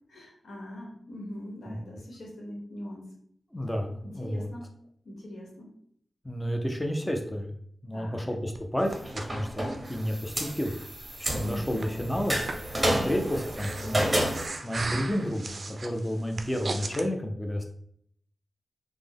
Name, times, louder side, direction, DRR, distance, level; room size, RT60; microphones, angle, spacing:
voice 1, 0.1-3.1 4.0-4.7 5.0-5.7 7.9-8.3 11.4-11.9 12.8-13.2, equal, 90° left, -2 dB, 1.0 m, -41 dB
voice 2, 1.7-2.0 3.5-4.5 6.2-7.5 7.8-10.7 11.2-12.4 12.8-14.2 14.5-17.6, equal, 15° left, 3 dB, 0.5 m, -31 dB
Breathing, 8.5-17.1, right 3 dB, 60° right, 0.4 m, -39 dB
sound 1, 8.8-14.5, right 1 dB, 25° right, 0.7 m, -31 dB
3.3 x 2.0 x 3.4 m, 0.65 s
cardioid pair, 55°, 0 cm